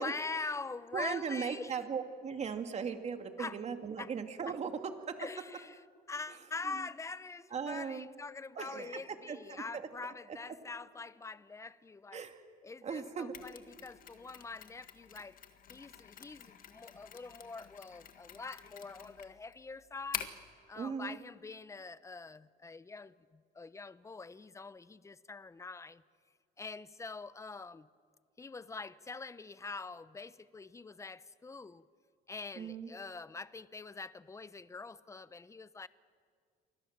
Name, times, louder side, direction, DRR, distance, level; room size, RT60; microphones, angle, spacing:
voice 1, 0.0-1.8 3.4-3.6 4.0-4.1 4.5-4.6 5.2-5.8 6.1-12.3 12.6-15.4 15.7-20.4 20.7-26.0 26.6-27.9 28.4-31.8 32.3-35.9, left 4 dB, 15° left, 16 dB, 0.8 m, -44 dB
voice 2, 0.9-4.7 5.1-5.2 7.5-8.1 8.6-8.9 9.3-9.8 12.1-12.4 12.8-13.4 20.7-21.2 32.6-32.9, right 6 dB, 40° right, 6 dB, 2.4 m, -38 dB
Mechanisms, 13.3-20.5, left 9 dB, 55° left, 1.9 m, -47 dB
29.0 x 24.5 x 7.4 m, 2.1 s
cardioid pair, 110°, 17 cm